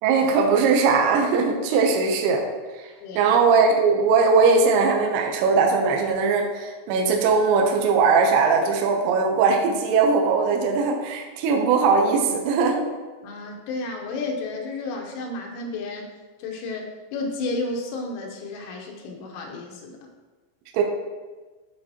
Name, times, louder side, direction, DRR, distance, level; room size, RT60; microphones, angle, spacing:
voice 1, 0.0-2.4 2.7-2.9 3.2-12.8 20.7-20.8, right 4 dB, 80° right, 1 dB, 2.4 m, -20 dB
voice 2, 3.0-3.3 13.2-16.1 16.4-20.0, left 3 dB, 90° left, 1 dB, 3.3 m, -32 dB
11.5 x 4.0 x 2.8 m, 1.3 s
omnidirectional pair, 5.5 m